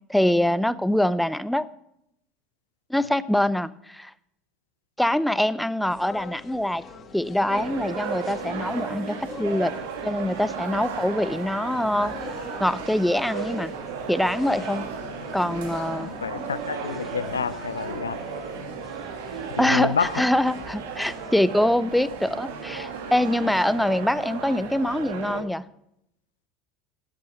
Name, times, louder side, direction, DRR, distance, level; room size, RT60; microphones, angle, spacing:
voice 1, 0.0-1.7 2.9-4.1 5.0-6.8 7.1-9.7 10.0-12.2 12.6-13.7 14.1-14.9 15.3-16.1 19.6-25.6, left 1 dB, 5° left, 16 dB, 0.7 m, -24 dB
sound 1, 5.8-21.4, left 5 dB, 35° left, 2.3 m, -44 dB
sound 2, 7.5-25.4, right 5 dB, 70° right, 1.8 m, -35 dB
voice 2, 16.2-18.3 19.5-20.2, left 6 dB, 85° left, 17 dB, 0.4 m, -28 dB
12.5 x 9.0 x 6.4 m, 0.77 s
hypercardioid pair, 75°, 0 cm